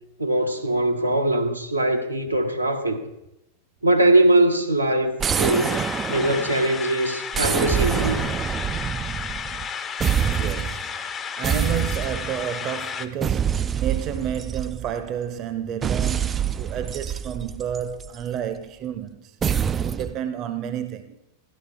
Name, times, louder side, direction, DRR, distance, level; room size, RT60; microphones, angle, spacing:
voice 1, 0.2-3.0 3.8-5.8 6.1-8.3, right 1 dB, 85° right, 1.1 m, -21 dB
sound 1, 5.2-6.8 7.3-9.7 10.0-10.8 11.4-12.5 13.2-15.1 15.8-18.2 19.4-20.2, right 8 dB, 20° right, 0.3 m, -26 dB
sound 2, 5.3-13.1, left 6 dB, 20° left, 0.6 m, -32 dB
voice 2, 10.2-11.0 11.3-21.2, right 8 dB, 35° right, 0.8 m, -31 dB
13.5 x 11.5 x 3.6 m
figure-of-eight pair, 90°, 0 cm